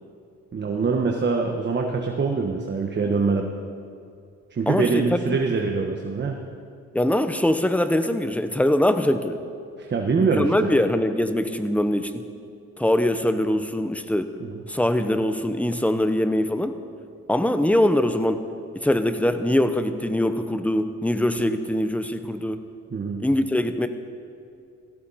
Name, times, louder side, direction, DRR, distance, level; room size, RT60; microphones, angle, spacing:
voice 1, 0.5-3.5 4.5-6.4 9.8-10.7 14.4-14.5 22.9-23.2, right 4 dB, 35° right, 2 dB, 1.4 m, -24 dB
voice 2, 4.7-5.4 6.9-9.4 10.2-12.2 12.8-14.3 14.7-16.8 17.3-18.5 18.7-22.6 23.2-23.9, left 1 dB, 5° left, 9 dB, 0.9 m, -22 dB
17.0 x 15.0 x 4.2 m, 2.4 s
cardioid pair, 90°, 30 cm